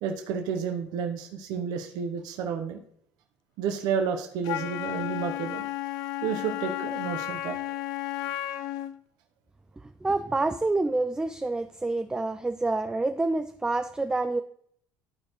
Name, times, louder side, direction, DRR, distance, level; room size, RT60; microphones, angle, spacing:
voice 1, 0.0-2.8 3.6-5.6 6.2-7.6, right 7 dB, 75° right, 3 dB, 0.9 m, -31 dB
Wind instrument woodwind instrument, 4.4-9.0, left 14 dB, 75° left, 0.5 m, -33 dB
voice 2, 10.0-14.4, right 2 dB, 10° right, 8 dB, 0.4 m, -27 dB
13.0 x 4.4 x 3.0 m, 0.65 s
supercardioid pair, 100°, 7 cm